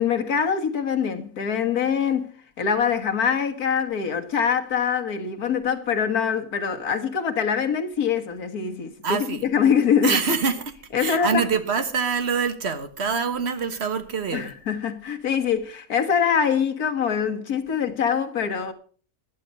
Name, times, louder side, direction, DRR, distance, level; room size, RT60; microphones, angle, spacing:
voice 1, 0.0-2.3 2.6-10.2 10.9-11.4 14.3-18.7, left 7 dB, 85° left, 2.0 m, -24 dB
voice 2, 9.0-9.4 10.0-14.5, right 5 dB, 45° right, 1.5 m, -25 dB
11.5 x 11.5 x 5.3 m
omnidirectional pair, 1.5 m